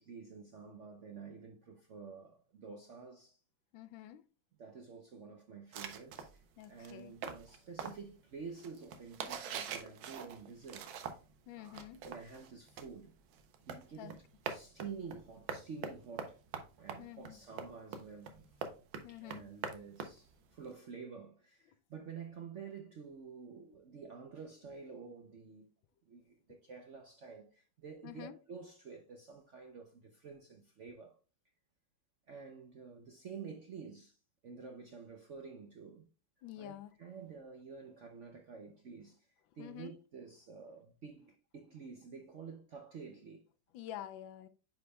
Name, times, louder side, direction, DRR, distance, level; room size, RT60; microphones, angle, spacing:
voice 1, 0.0-3.4 4.6-6.4 6.7-10.9 11.6-11.8 12.0-13.1 13.7-16.4 16.8-18.6 19.1-25.7 26.0-31.2 32.3-34.2 34.4-36.1 36.6-43.5, right 5 dB, 65° right, 0.7 m, -50 dB
voice 2, 3.7-4.3 6.6-7.1 11.5-12.0 14.0-14.2 17.0-17.4 19.0-19.5 28.0-28.4 36.4-37.0 39.6-39.9 43.7-44.5, left 12 dB, 80° left, 1.4 m, -48 dB
sound 1, 5.7-11.4 11.6-20.7, right 6 dB, 90° right, 1.6 m, -44 dB
9.4 x 5.0 x 2.2 m
omnidirectional pair, 2.1 m